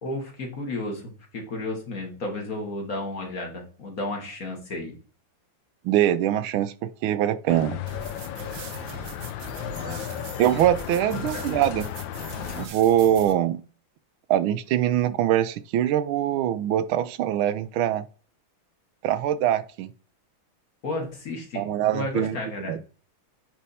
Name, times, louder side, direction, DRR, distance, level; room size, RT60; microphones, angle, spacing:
voice 1, 0.0-5.0 9.8-10.3 11.3-11.4 20.8-22.8, left 2 dB, 45° left, 1.7 m, -33 dB
voice 2, 5.8-7.8 10.4-11.9 12.6-13.6 14.3-18.1 19.0-19.9 21.5-22.4 22.7-22.8, right 11 dB, 80° right, 1.4 m, -23 dB
sound 1, 7.5-12.7, left 11 dB, 75° left, 1.2 m, -35 dB
sound 2, 7.9-13.3, right 5 dB, 55° right, 1.0 m, -41 dB
9.5 x 3.5 x 4.1 m
omnidirectional pair, 2.3 m